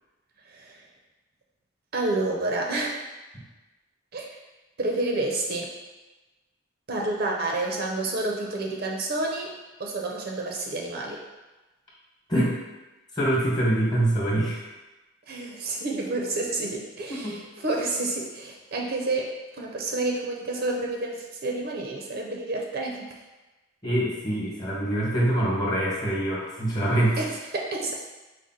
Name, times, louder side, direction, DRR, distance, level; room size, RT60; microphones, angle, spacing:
voice 1, 0.5-0.8 1.9-3.0 4.1-4.3 4.8-5.7 6.9-9.5 9.8-11.2 15.3-23.1 27.2-27.9, right 2 dB, 50° right, 0 dB, 0.5 m, -29 dB
voice 2, 13.1-14.6 17.2-17.4 23.8-27.2, right 1 dB, 20° left, -6 dB, 1.1 m, -24 dB
4.9 x 2.1 x 4.1 m, 1.1 s
head